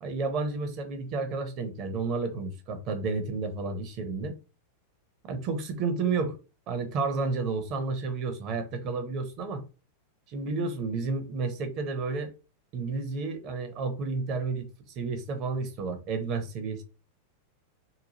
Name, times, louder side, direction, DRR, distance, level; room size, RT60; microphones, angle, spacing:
voice 1, 0.0-4.4 5.2-6.4 6.7-9.6 10.3-12.3 12.7-14.7 15.0-16.8, right 4 dB, 40° right, 0.7 m, -31 dB
2.8 x 2.3 x 2.9 m
figure-of-eight pair, 90°, 0 cm